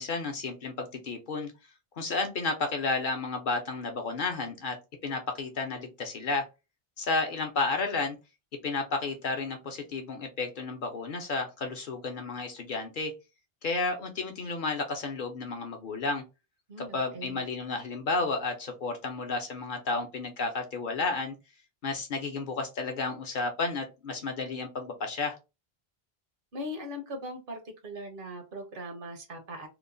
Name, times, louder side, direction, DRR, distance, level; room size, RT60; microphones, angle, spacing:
voice 1, 0.0-1.5 2.0-4.8 5.0-6.4 7.0-8.2 8.6-13.1 13.6-16.2 16.8-21.3 21.8-25.4, left 3 dB, 60° left, 4 dB, 0.7 m, -32 dB
voice 2, 16.7-17.5 26.5-29.7, equal, 60° right, 5 dB, 0.9 m, -40 dB
2.9 x 2.1 x 2.5 m, 0.27 s
omnidirectional pair, 1.1 m